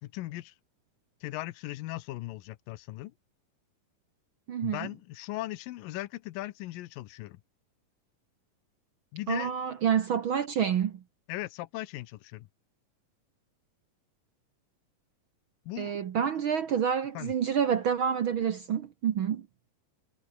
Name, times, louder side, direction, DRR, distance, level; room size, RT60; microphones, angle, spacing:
voice 1, 0.0-0.5 1.2-3.1 4.6-7.4 9.1-9.6 11.3-12.5 15.7-16.0 17.1-17.3, left 17 dB, 85° left, 2.6 m, -38 dB
voice 2, 4.5-4.9 9.3-11.0 15.8-19.5, right 8 dB, 70° right, 1.2 m, -28 dB
omnidirectional pair, 3.9 m